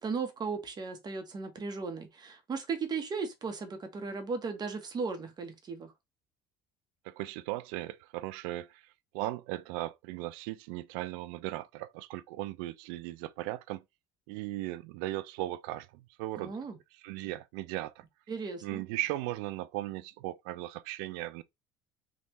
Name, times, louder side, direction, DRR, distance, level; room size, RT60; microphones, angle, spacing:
voice 1, 0.0-5.9 16.4-16.8 18.3-18.8, right 4 dB, 35° right, 1.1 m, -36 dB
voice 2, 7.0-13.8 14.3-16.6 17.0-18.0 18.6-21.4, right 16 dB, 80° right, 0.4 m, -37 dB
3.5 x 2.5 x 3.1 m
supercardioid pair, 80°, 12 cm